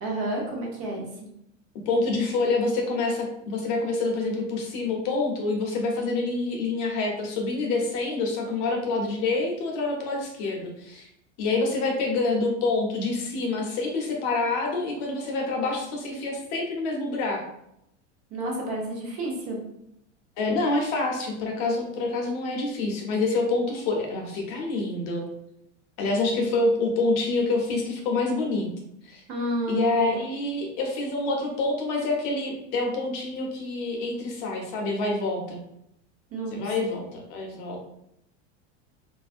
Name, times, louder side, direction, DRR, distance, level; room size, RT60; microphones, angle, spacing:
voice 1, 0.0-1.1 18.3-19.6 29.3-30.1 36.3-36.9, right 1 dB, 40° right, -1 dB, 0.9 m, -30 dB
voice 2, 1.9-11.1 11.4-17.4 20.4-25.2 26.0-28.7 29.0-29.2 29.7-35.6 36.5-37.8, left 3 dB, 55° left, 0 dB, 0.8 m, -27 dB
2.5 x 2.2 x 2.4 m, 0.79 s
supercardioid pair, 115°, 36 cm